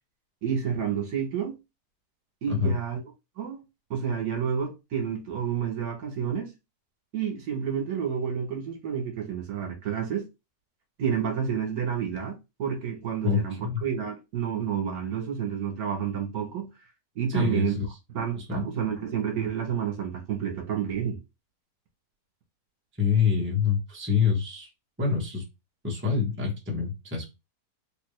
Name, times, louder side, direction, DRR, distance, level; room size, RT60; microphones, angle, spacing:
voice 1, 0.4-1.6 2.4-3.0 3.4-3.6 3.9-6.5 7.1-10.3 11.0-16.7 17.1-17.7 18.1-21.2, right 8 dB, 70° right, 1.5 m, -30 dB
voice 2, 13.2-13.8 17.3-17.8 18.4-18.6 23.0-24.7 25.0-25.4 25.8-27.2, left 6 dB, 10° right, 0.9 m, -26 dB
3.3 x 2.9 x 3.2 m
omnidirectional pair, 1.7 m